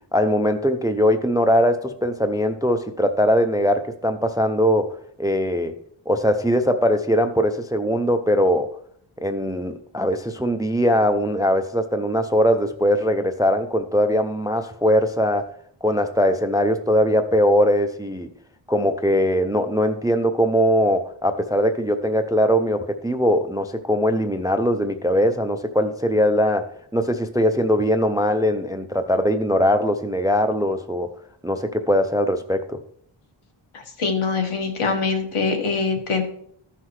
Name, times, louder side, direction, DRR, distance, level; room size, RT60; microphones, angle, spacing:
voice 1, 0.1-4.9 5.2-5.7 6.1-8.7 9.2-15.5 15.8-18.3 18.7-31.1 31.4-32.8, equal, 10° right, 8 dB, 0.3 m, -21 dB
voice 2, 34.0-36.2, left 4 dB, 80° left, 3 dB, 1.4 m, -23 dB
14.5 x 5.7 x 3.1 m, 0.66 s
wide cardioid pair, 170°, 49 cm